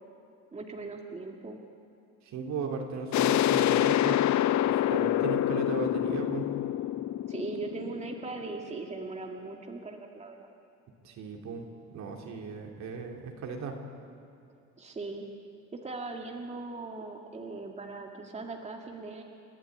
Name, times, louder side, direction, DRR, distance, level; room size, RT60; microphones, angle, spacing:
voice 1, 0.5-1.6 7.3-10.5 14.5-15.3 15.7-19.2, right 3 dB, 20° right, 2 dB, 2.0 m, -39 dB
voice 2, 2.3-4.2 4.7-6.5 11.0-11.6 11.9-13.8, right 5 dB, 65° right, 2 dB, 3.1 m, -36 dB
sound 1, 3.1-8.6, left 12 dB, 65° left, 0.8 m, -26 dB
29.5 x 12.0 x 9.3 m, 2.7 s
cardioid pair, 125°, 30 cm